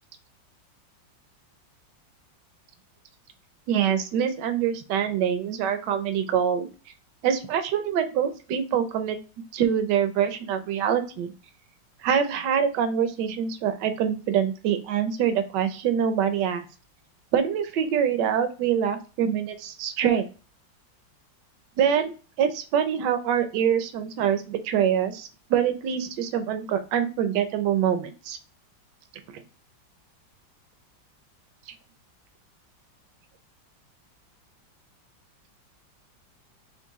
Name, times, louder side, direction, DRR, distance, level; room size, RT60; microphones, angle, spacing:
voice 1, 3.7-6.7 7.2-9.2 9.5-11.3 12.0-16.6 17.3-20.3 21.8-28.4 29.3-29.4, right 8 dB, 75° right, 8 dB, 1.3 m, -25 dB
4.5 x 3.0 x 3.0 m, 0.35 s
omnidirectional pair, 2.0 m